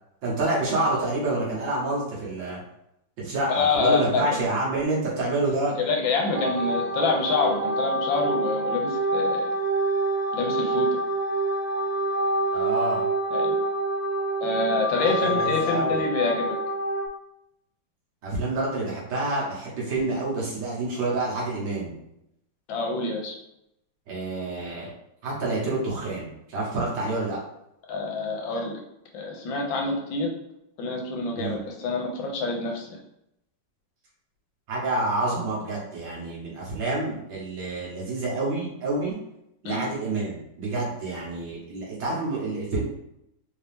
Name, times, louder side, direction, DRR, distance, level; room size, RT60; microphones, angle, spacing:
voice 1, 0.2-2.6 3.2-5.7 12.5-13.1 15.0-16.1 18.2-21.9 24.1-24.9 25.2-27.4 31.4-31.6 34.7-39.2 39.6-42.8, right 2 dB, 80° right, -5 dB, 2.2 m, -28 dB
voice 2, 3.5-4.6 5.8-9.4 10.3-10.9 13.3-13.6 14.4-16.6 22.7-23.4 27.9-28.8 29.1-30.3 30.8-33.0 39.6-39.8, left 3 dB, 85° left, 1 dB, 1.6 m, -26 dB
sound 1, 6.3-17.1, right 2 dB, 60° right, 1.2 m, -26 dB
4.4 x 2.8 x 3.5 m, 0.81 s
omnidirectional pair, 2.1 m